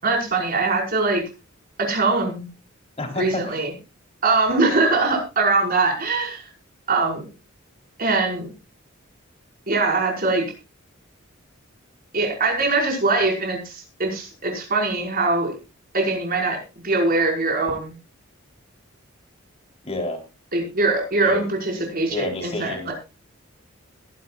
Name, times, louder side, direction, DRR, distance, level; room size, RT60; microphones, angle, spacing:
voice 1, 0.0-1.2 1.8-2.4 3.2-3.7 4.2-6.5 6.9-7.2 8.0-8.5 9.7-10.4 12.1-15.5 15.9-16.6 16.8-17.9 20.5-22.9, right 3 dB, 45° right, 0 dB, 5.7 m, -22 dB
voice 2, 3.0-3.6 19.8-20.2 21.2-21.5 22.1-22.9, left 1 dB, 30° left, 3 dB, 4.0 m, -29 dB
21.5 x 11.0 x 2.5 m, 0.28 s
head